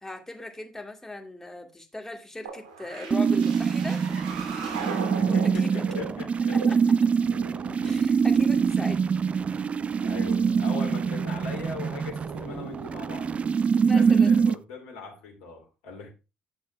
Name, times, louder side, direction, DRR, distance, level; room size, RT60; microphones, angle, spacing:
voice 1, 0.0-4.6 4.9-5.8 6.5-6.8 7.8-9.0 13.8-14.3, left 2 dB, 10° left, 2.1 m, -39 dB
sound 1, 2.4-13.5, right 5 dB, 75° right, 2.6 m, -40 dB
sound 2, 3.1-14.5, right 6 dB, 35° right, 0.3 m, -24 dB
voice 2, 5.2-6.6 10.0-13.3 13.7-16.1, left 4 dB, 75° left, 2.5 m, -40 dB
11.5 x 6.3 x 2.3 m
hypercardioid pair, 55°, 4 cm